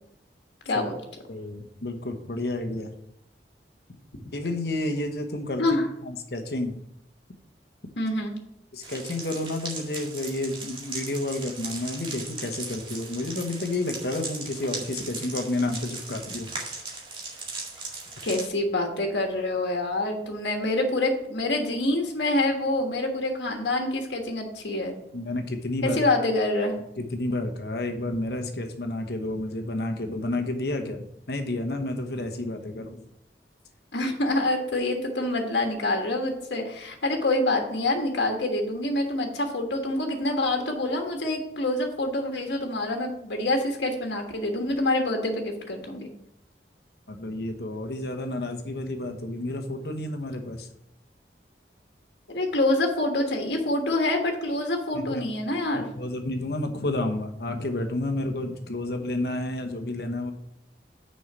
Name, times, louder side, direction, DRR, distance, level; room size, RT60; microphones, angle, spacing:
voice 1, 0.6-1.0 5.6-5.8 8.0-8.3 18.2-24.9 25.8-26.7 33.9-46.1 52.3-55.9, left 2 dB, 80° left, 2 dB, 1.4 m, -26 dB
voice 2, 1.3-2.9 4.3-5.6 6.0-6.8 8.7-16.5 25.1-26.0 27.0-33.0 47.1-50.7 54.9-55.3 55.7-60.3, left 2 dB, 60° left, 5 dB, 1.1 m, -30 dB
sound 1, 8.8-18.5, right 3 dB, 30° right, 2.0 m, -38 dB
6.4 x 5.5 x 6.7 m, 0.77 s
head